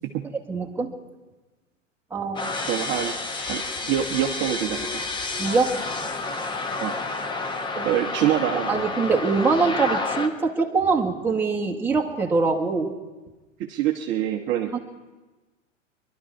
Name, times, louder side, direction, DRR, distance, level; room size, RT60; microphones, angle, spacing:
voice 1, 0.5-0.9 2.1-2.5 5.4-5.8 7.7-7.9 8.7-13.0 14.7-14.8, right 4 dB, 5° right, -2 dB, 1.5 m, -23 dB
sound 1, 2.4-10.3, left 3 dB, 10° left, 0.9 m, -30 dB
voice 2, 2.7-3.2 3.5-3.6 3.9-5.0 6.8-7.0 7.8-8.8 13.6-14.8, right 11 dB, 30° right, 2 dB, 1.0 m, -25 dB
24.5 x 12.0 x 4.6 m, 1.2 s
figure-of-eight pair, 100°, 39 cm